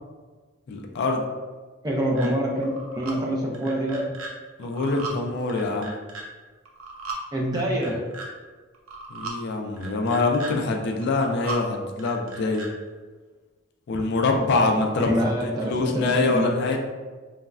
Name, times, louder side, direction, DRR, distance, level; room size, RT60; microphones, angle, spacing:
voice 1, 0.7-1.2 4.6-5.9 9.1-12.6 13.9-16.8, left 3 dB, 55° left, 2 dB, 0.3 m, -24 dB
voice 2, 1.8-2.7 3.0-4.1 7.3-8.0 15.0-16.5, right 1 dB, 20° right, -2 dB, 0.4 m, -25 dB
sound 1, 2.2-2.3 2.6-3.1 3.5-4.3 4.6-5.2 5.5-6.2 6.7-7.2 7.5-8.3 8.7-9.4 9.8-10.5 11.0-11.6 12.0-12.7, right 3 dB, 85° right, 0.5 m, -36 dB
3.2 x 2.0 x 2.4 m, 1.4 s
head